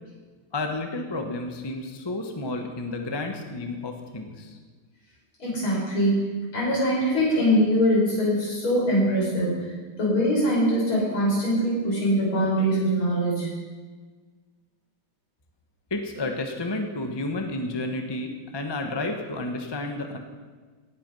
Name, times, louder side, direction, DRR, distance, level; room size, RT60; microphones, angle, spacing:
voice 1, 0.5-4.6 15.9-20.2, left 2 dB, 20° left, 4 dB, 0.8 m, -31 dB
voice 2, 5.4-6.2 6.5-9.7 10.0-13.5, equal, 70° left, -7 dB, 6.6 m, -23 dB
18.0 x 8.6 x 5.4 m, 1.4 s
omnidirectional pair, 2.4 m